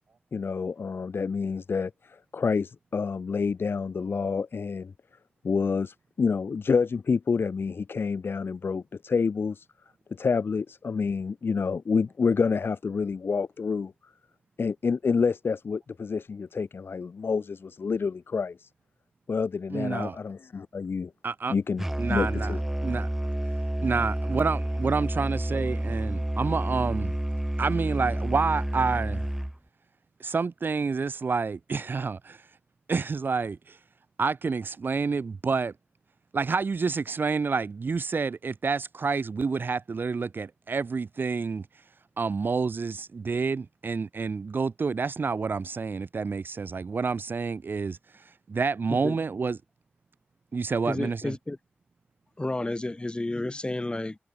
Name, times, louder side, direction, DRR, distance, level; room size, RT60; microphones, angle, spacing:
voice 1, 0.3-4.9 5.4-9.7 10.1-13.9 14.6-18.7 19.3-21.1 21.5-22.6, left 5 dB, 80° left, 1.2 m, -28 dB
voice 2, 19.7-20.2 21.2-21.5 22.0-22.5 22.8-23.1 23.8-27.2 27.6-29.3 30.2-32.4 32.9-33.8 34.2-35.7 36.3-41.7 42.2-49.6 50.5-51.3, right 4 dB, 60° right, 0.6 m, -28 dB
Musical instrument, 21.8-29.6, right 1 dB, 10° right, 1.0 m, -29 dB
voice 3, 50.8-51.6 52.4-54.2, left 2 dB, 25° left, 5.5 m, -31 dB
wide cardioid pair, 95°, 4 cm